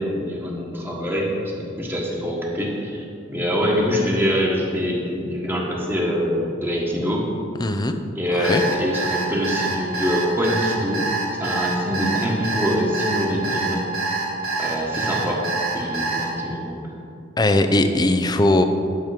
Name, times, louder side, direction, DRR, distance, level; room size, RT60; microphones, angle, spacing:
voice 1, 0.0-7.3 8.1-11.1 11.4-13.9 14.6-15.4 15.7-16.8, equal, 10° right, -2 dB, 1.6 m, -24 dB
voice 2, 7.6-8.0 8.5-8.6 17.4-18.6, left 2 dB, 20° left, 7 dB, 0.6 m, -19 dB
Alarm, 8.4-16.3, right 3 dB, 50° right, 2.7 m, -25 dB
11.0 x 7.2 x 5.2 m, 2.6 s
head